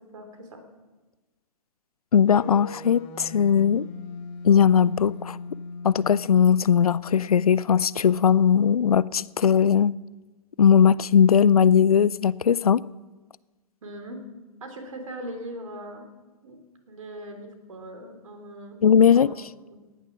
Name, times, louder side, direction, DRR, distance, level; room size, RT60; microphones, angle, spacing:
voice 1, 0.1-0.6 13.8-14.2 14.6-16.1 16.4-16.6 16.9-18.8 19.1-19.3 19.7-19.8, right 1 dB, 60° right, 3.4 m, -40 dB
voice 2, 2.1-3.9 4.4-5.4 5.8-9.9 10.6-12.8 18.8-19.3, left 7 dB, 70° left, 0.4 m, -19 dB
sound 1, 2.3-8.3, left 4 dB, 30° left, 1.4 m, -39 dB
18.0 x 10.0 x 6.2 m
figure-of-eight pair, 115°, 19 cm